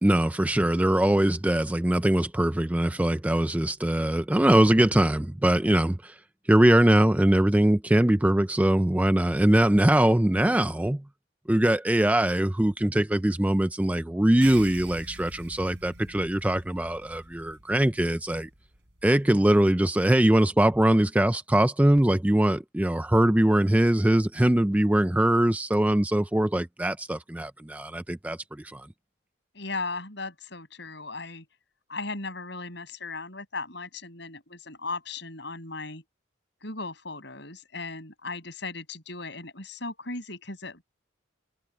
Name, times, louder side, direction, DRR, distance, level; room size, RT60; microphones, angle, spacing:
voice 1, 0.0-6.2 6.5-11.0 11.5-18.5 19.0-28.9, right 1 dB, 5° right, 0.4 m, -22 dB
sound 1, 14.4-19.2, right 3 dB, 55° right, 6.9 m, -46 dB
voice 2, 29.5-31.4 31.9-36.0 36.6-40.8, left 3 dB, 60° left, 7.2 m, -37 dB
head